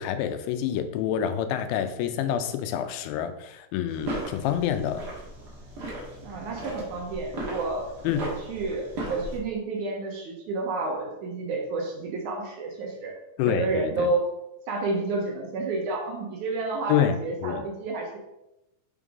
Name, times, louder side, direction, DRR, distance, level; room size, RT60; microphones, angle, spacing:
voice 1, 0.0-5.0 8.0-8.2 13.4-14.1 16.9-17.2 17.4-17.6, left 9 dB, 90° left, 9 dB, 2.4 m, -27 dB
sound 1, 3.9-9.4, right 1 dB, 45° right, 1.3 m, -37 dB
voice 2, 6.2-7.9 8.2-13.1 13.5-14.2 14.7-18.2, right 3 dB, 70° right, 0 dB, 2.1 m, -30 dB
5.9 x 5.3 x 3.6 m, 0.89 s
omnidirectional pair, 4.1 m